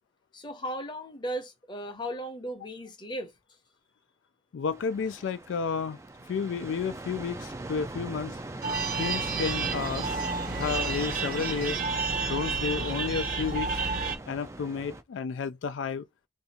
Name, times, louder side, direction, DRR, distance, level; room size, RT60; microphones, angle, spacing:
voice 1, 0.3-3.3, equal, 25° left, 0.7 m, -36 dB
voice 2, 4.5-6.0 6.3-8.4 9.0-10.2 10.5-11.8 12.3-13.8 14.3-16.1, left 6 dB, 90° left, 0.3 m, -32 dB
sound 1, 4.7-15.0, right 2 dB, 15° right, 0.3 m, -40 dB
sound 2, 8.6-14.2, right 4 dB, 50° right, 0.7 m, -31 dB
2.6 x 2.4 x 4.1 m
head